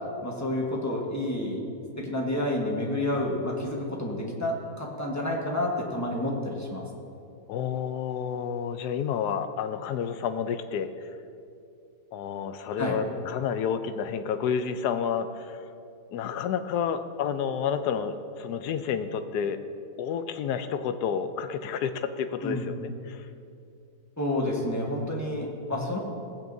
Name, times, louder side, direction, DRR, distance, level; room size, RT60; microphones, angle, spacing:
voice 1, 0.2-1.6 2.0-6.8 12.8-13.0 22.4-22.7 24.2-26.0, left 1 dB, 10° left, -2 dB, 1.1 m, -29 dB
voice 2, 7.5-10.9 12.1-15.5 16.1-19.6 20.0-23.2 25.7-25.9, left 7 dB, 75° left, 9 dB, 1.1 m, -30 dB
17.0 x 8.7 x 2.7 m, 2.6 s
omnidirectional pair, 1.8 m